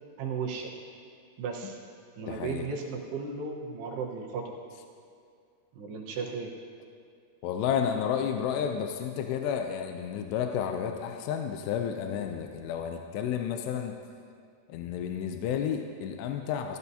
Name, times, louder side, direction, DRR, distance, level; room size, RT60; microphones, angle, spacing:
voice 1, 0.2-0.7 1.4-1.8 2.2-4.6 5.7-6.5, right 5 dB, 75° right, 0 dB, 3.1 m, -35 dB
voice 2, 2.3-2.7 7.4-13.9 14.7-16.8, left 8 dB, 85° left, 5 dB, 2.7 m, -31 dB
16.0 x 14.0 x 2.8 m, 2.3 s
omnidirectional pair, 4.9 m